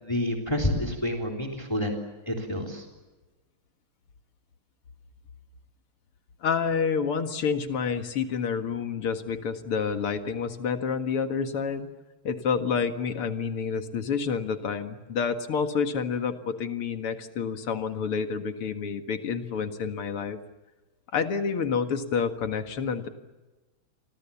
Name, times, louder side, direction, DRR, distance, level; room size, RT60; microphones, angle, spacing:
voice 1, 0.0-2.0 2.3-2.8, left 1 dB, 10° left, 2 dB, 3.7 m, -28 dB
voice 2, 6.4-11.9 12.2-20.4 21.1-23.1, left 6 dB, 90° left, 8 dB, 2.8 m, -28 dB
29.5 x 25.0 x 7.2 m, 1.2 s
omnidirectional pair, 2.4 m